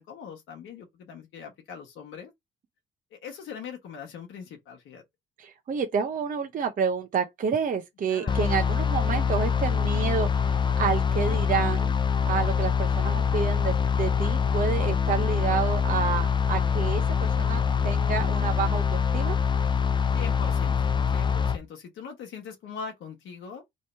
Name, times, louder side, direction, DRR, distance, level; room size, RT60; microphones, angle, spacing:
voice 1, 0.0-2.3 3.1-5.0 8.1-8.4 20.1-20.9 21.1-23.6, left 6 dB, 85° left, 1.2 m, -41 dB
voice 2, 5.4-10.5 10.8-11.9 12.3-19.4, right 6 dB, 45° right, 0.6 m, -29 dB
sound 1, 8.3-21.6, left 6 dB, 25° left, 0.4 m, -24 dB
3.1 x 2.8 x 4.3 m
cardioid pair, 90°, 20 cm